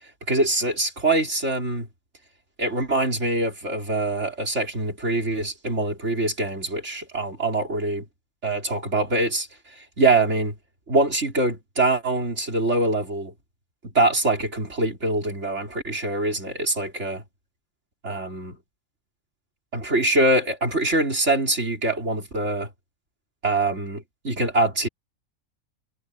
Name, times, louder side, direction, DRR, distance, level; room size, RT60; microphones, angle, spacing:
voice 1, 0.3-1.9 2.6-8.0 8.4-9.5 9.8-10.5 10.9-13.3 13.8-17.2 18.0-18.6 19.7-22.7 23.4-24.9, right 2 dB, 55° right, 4.8 m, -24 dB
omnidirectional pair, 1.4 m